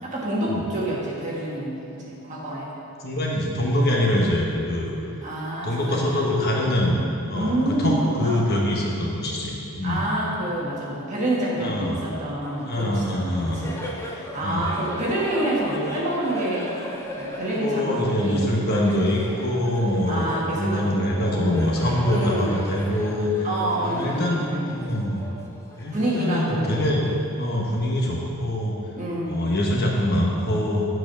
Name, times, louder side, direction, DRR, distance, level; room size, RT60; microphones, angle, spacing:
voice 1, 0.0-2.7 5.2-6.2 7.3-8.6 9.8-13.8 14.0-16.7 17.1-18.5 20.1-21.6 22.1-22.6 23.4-24.7 25.9-26.8 28.9-29.5, right 1 dB, 35° right, -5 dB, 1.6 m, -27 dB
voice 2, 3.0-5.0 5.6-7.0 7.3-10.1 11.6-12.0 12.6-13.7 14.4-14.7 17.5-20.3 20.5-23.5 23.8-25.2 25.8-27.0 27.3-28.8 29.3-30.9, left 1 dB, 45° left, -2 dB, 1.1 m, -24 dB
Laughter, 12.4-27.4, left 1 dB, 10° left, 0.7 m, -38 dB
8.3 x 4.7 x 6.3 m, 2.6 s
head